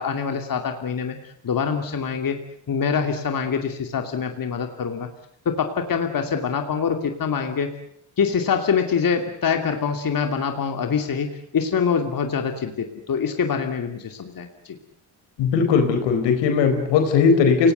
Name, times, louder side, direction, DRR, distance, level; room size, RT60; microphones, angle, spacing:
voice 1, 0.0-2.4 2.7-5.1 5.4-7.7 8.2-14.7, left 6 dB, 55° left, 5 dB, 2.7 m, -25 dB
voice 2, 15.4-17.7, left 5 dB, 85° left, 6 dB, 4.3 m, -18 dB
28.5 x 19.0 x 8.1 m, 0.68 s
supercardioid pair, 60°, 42 cm